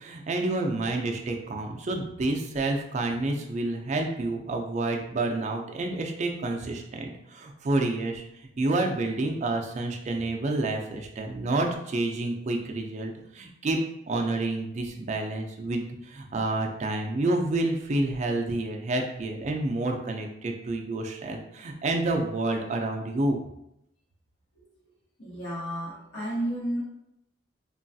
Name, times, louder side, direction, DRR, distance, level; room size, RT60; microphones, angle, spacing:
voice 1, 0.0-8.2 8.6-13.8 14.1-23.4, right 2 dB, 35° right, 3 dB, 0.3 m, -29 dB
voice 2, 25.2-26.8, right 1 dB, 60° left, -9 dB, 0.8 m, -32 dB
3.1 x 2.3 x 2.6 m, 0.81 s
head